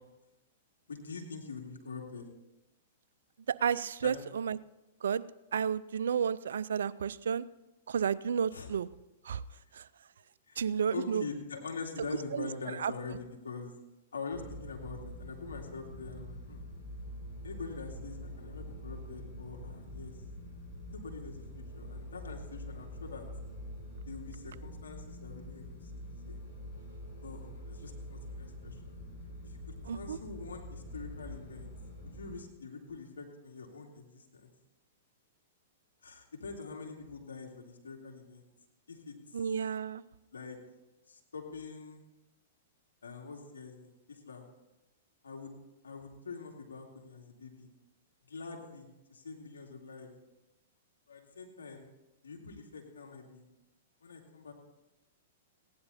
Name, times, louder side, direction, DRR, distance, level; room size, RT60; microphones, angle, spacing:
voice 1, 0.9-2.3 4.0-4.2 8.5-8.7 9.5-9.6 10.5-10.6 10.9-13.7 14.1-16.6 17.4-20.1 20.9-23.3 24.1-26.4 27.2-28.9 29.4-31.7 32.0-34.5 36.0-38.4 38.9-39.4 40.3-40.6 41.1-42.0 43.0-44.4 45.2-45.5 45.8-47.7 48.3-50.1 51.1-51.9 52.2-53.4 54.0-54.5, left 4 dB, 90° left, 1 dB, 2.5 m, -44 dB
voice 2, 3.5-4.6 5.0-5.2 5.5-7.5 7.9-8.9 9.2-9.4 9.7-9.9 10.6-11.2 12.3-12.9 29.9-30.2 39.3-40.0, right 7 dB, 80° right, 17 dB, 0.5 m, -32 dB
sound 1, 14.3-32.3, left 1 dB, 45° left, 5.1 m, -45 dB
16.0 x 10.5 x 4.2 m, 0.99 s
hypercardioid pair, 120°, 0 cm